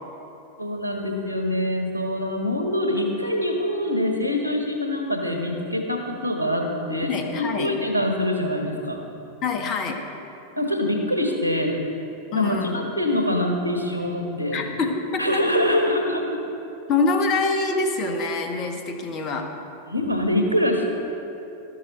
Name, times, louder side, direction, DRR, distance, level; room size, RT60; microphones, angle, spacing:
voice 1, 0.6-9.0 10.6-11.8 12.3-14.7 15.2-16.4 19.9-20.8, left 1 dB, 90° left, 3 dB, 1.5 m, -24 dB
voice 2, 7.1-7.7 9.4-10.0 12.3-12.9 14.5-15.2 16.9-19.5, left 4 dB, 35° left, 4 dB, 1.3 m, -25 dB
12.5 x 12.0 x 4.2 m, 2.8 s
figure-of-eight pair, 90°, 0 cm